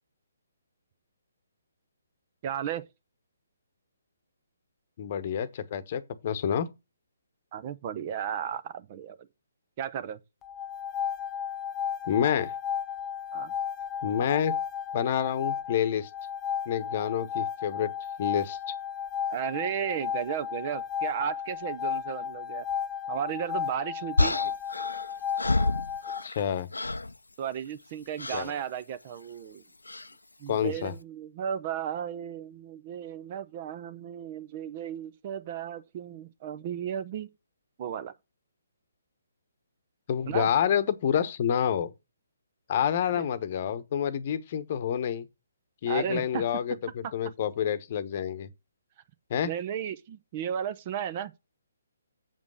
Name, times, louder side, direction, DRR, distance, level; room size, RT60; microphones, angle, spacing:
voice 1, 2.4-2.9 7.5-9.3 9.8-10.2 13.3-13.5 19.3-22.6 23.1-24.4 27.4-29.6 30.4-37.3 37.8-38.1 40.3-40.5 43.1-43.2 45.9-46.4 49.4-51.3, right 9 dB, 35° right, 0.7 m, -34 dB
voice 2, 5.0-6.7 12.1-12.5 14.0-14.5 14.9-16.1 16.7-17.9 18.2-18.8 26.2-26.7 28.3-28.6 30.5-30.9 40.1-41.9 42.7-45.3 45.8-48.5 49.3-49.5, left 9 dB, 40° left, 1.0 m, -28 dB
sound 1, 10.4-26.2, left 8 dB, 15° left, 0.5 m, -34 dB
sound 2, 24.2-26.5 26.7-27.1 28.2-28.5 29.9-30.1, left 2 dB, 80° left, 0.6 m, -28 dB
7.4 x 5.3 x 6.4 m
figure-of-eight pair, 135°, 0 cm